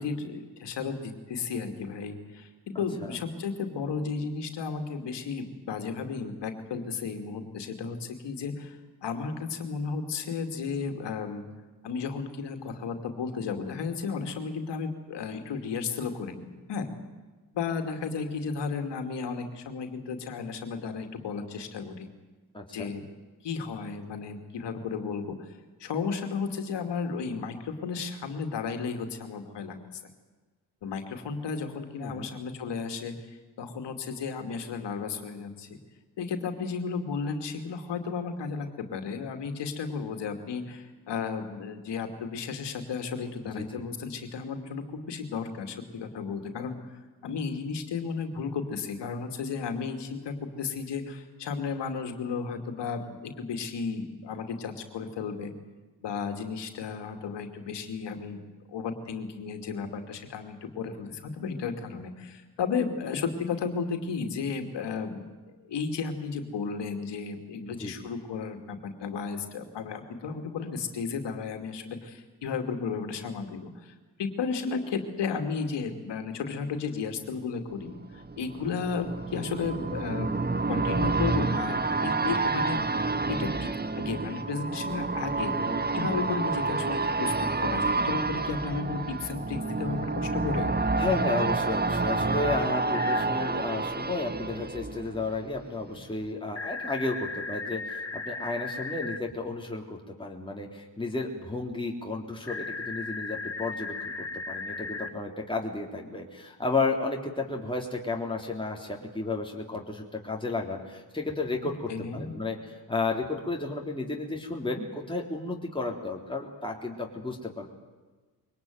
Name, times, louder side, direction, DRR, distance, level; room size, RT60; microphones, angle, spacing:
voice 1, 0.0-11.4 11.8-16.9 17.5-22.1 22.7-23.0 23.4-30.0 30.8-35.7 36.2-55.5 56.0-58.4 58.7-65.2 65.6-73.9 74.2-80.4 80.7-82.8 83.3-83.7 83.9-90.7 111.6-112.3, left 5 dB, 90° left, 6 dB, 2.6 m, -34 dB
voice 2, 22.5-22.9 32.0-32.3 43.6-43.7 67.7-67.9 85.5-85.9 91.0-112.6 112.9-117.7, left 3 dB, 10° left, -1 dB, 3.6 m, -33 dB
sound 1, 77.8-95.6 96.0-96.1, right 3 dB, 25° right, 1.2 m, -29 dB
sound 2, 92.9-93.2 96.6-99.2 102.5-105.1, left 3 dB, 35° left, 1.7 m, -36 dB
23.5 x 19.0 x 9.4 m, 1.3 s
cardioid pair, 55°, 41 cm